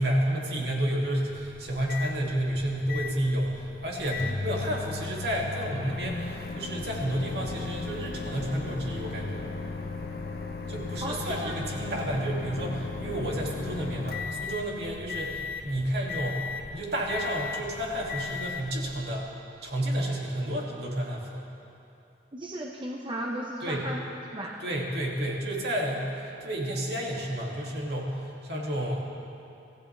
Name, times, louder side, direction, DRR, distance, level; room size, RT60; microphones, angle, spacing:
voice 1, 0.0-9.5 10.7-16.4 16.7-19.3 19.6-21.5 23.6-23.9 24.6-29.0, right 1 dB, 65° right, -2 dB, 2.5 m, -31 dB
Microwave oven, 1.3-19.3, left 4 dB, 55° left, 1.1 m, -36 dB
voice 2, 11.0-11.6 22.3-24.0 24.3-24.6, right 1 dB, 30° right, -1 dB, 0.9 m, -35 dB
25.0 x 15.0 x 3.4 m, 2.7 s
head